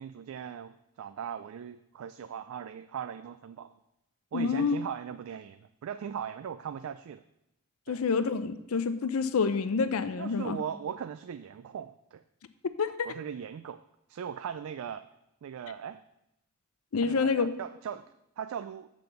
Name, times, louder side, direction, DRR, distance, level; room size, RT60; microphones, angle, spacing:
voice 1, 0.0-3.7 4.3-7.2 7.9-8.0 10.2-12.2 13.1-13.8 14.1-15.1 15.4-16.0 17.0-18.9, right 8 dB, 75° right, 12 dB, 0.3 m, -39 dB
voice 2, 4.3-4.8 7.9-10.6 12.8-13.1 16.9-17.5, left 5 dB, 80° left, 11 dB, 0.5 m, -28 dB
6.8 x 6.1 x 6.8 m, 0.85 s
head